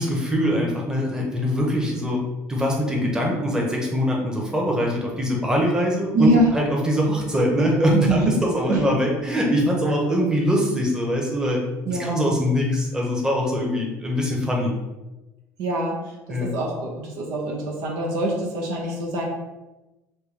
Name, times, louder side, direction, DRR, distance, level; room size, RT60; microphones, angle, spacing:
voice 1, 0.0-2.2 2.5-11.6 11.9-14.7 16.3-16.5, equal, 10° right, -2 dB, 1.0 m, -22 dB
voice 2, 6.1-6.5 7.9-8.3 8.7-8.8 11.8-12.1 15.6-16.0 16.3-19.2, right 1 dB, 80° right, -2 dB, 1.0 m, -24 dB
4.4 x 2.3 x 3.4 m, 1.1 s
supercardioid pair, 90°, 7 cm